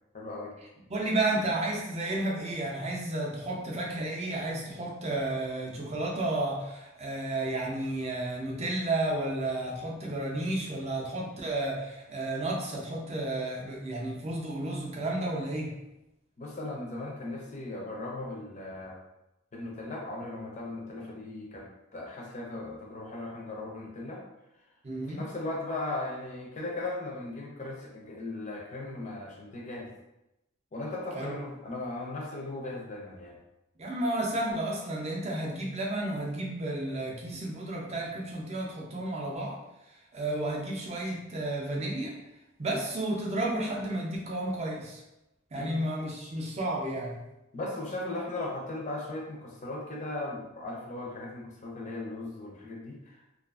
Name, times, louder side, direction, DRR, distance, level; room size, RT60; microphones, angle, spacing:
voice 1, 0.1-0.5 16.4-19.0 19.5-24.2 25.0-29.9 30.7-33.4 45.5-45.8 47.5-53.2, left 2 dB, 35° left, -2 dB, 0.5 m, -37 dB
voice 2, 0.9-15.7 24.8-25.2 31.1-31.3 33.8-39.6 40.1-42.1 42.6-45.0 45.5-47.2, right 2 dB, 30° right, -2 dB, 0.5 m, -32 dB
2.4 x 2.4 x 2.3 m, 0.91 s
head